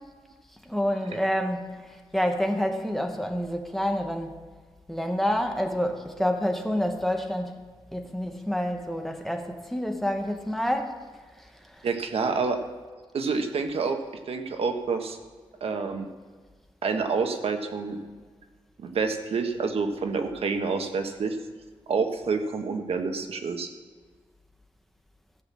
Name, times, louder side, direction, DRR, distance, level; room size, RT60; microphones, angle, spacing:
voice 1, 0.6-4.4 4.9-7.6 7.9-11.0 11.4-11.8, equal, ahead, 4 dB, 1.0 m, -28 dB
voice 2, 11.8-12.6 13.1-14.0 14.3-15.2 15.6-16.1 16.8-18.0 18.8-21.4 21.9-23.7, right 4 dB, 80° right, 5 dB, 1.2 m, -28 dB
15.0 x 5.9 x 7.4 m, 1.5 s
wide cardioid pair, 165°, 10 cm